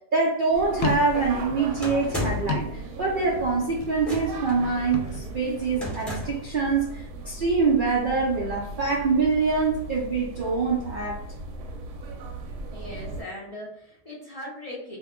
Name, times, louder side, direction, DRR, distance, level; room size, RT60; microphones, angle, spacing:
voice 1, 0.1-11.2, right 4 dB, 60° right, -4 dB, 0.5 m, -25 dB
sound 1, 0.5-13.2, right 2 dB, 85° right, 1.1 m, -38 dB
sound 2, 0.7-3.4 3.6-4.2 4.8-6.1, left 4 dB, 75° left, 1.0 m, -33 dB
sound 3, 1.8-2.6 4.0-4.5 5.8-6.5, left 1 dB, ahead, 0.7 m, -32 dB
voice 2, 12.7-15.0, left 1 dB, 35° left, -5 dB, 0.6 m, -39 dB
2.6 x 2.2 x 3.6 m, 0.75 s
omnidirectional pair, 1.5 m